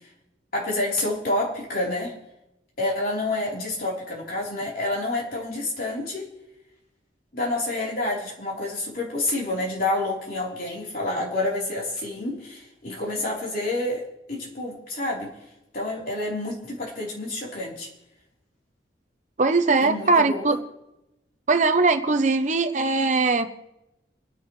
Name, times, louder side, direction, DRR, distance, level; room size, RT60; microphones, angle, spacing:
voice 1, 0.5-2.1 2.8-6.3 7.3-14.0 14.3-15.3 15.7-17.9 19.8-20.5, left 2 dB, 50° left, -4 dB, 3.7 m, -28 dB
voice 2, 19.4-20.6 21.5-23.5, right 3 dB, 40° right, 8 dB, 0.7 m, -20 dB
30.0 x 10.0 x 3.2 m, 0.92 s
head